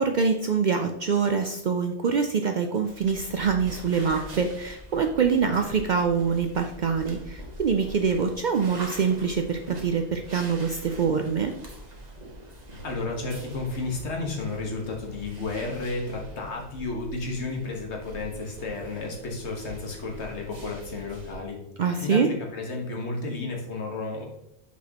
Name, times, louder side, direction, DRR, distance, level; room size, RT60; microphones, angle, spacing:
voice 1, 0.0-11.5 21.8-22.3, right 6 dB, 60° right, 5 dB, 0.5 m, -25 dB
sound 1, 2.8-21.3, equal, 40° right, 1.3 m, -43 dB
voice 2, 12.8-21.6 22.0-24.3, left 3 dB, 80° left, 0 dB, 1.6 m, -32 dB
6.1 x 5.9 x 2.9 m, 0.80 s
omnidirectional pair, 1.1 m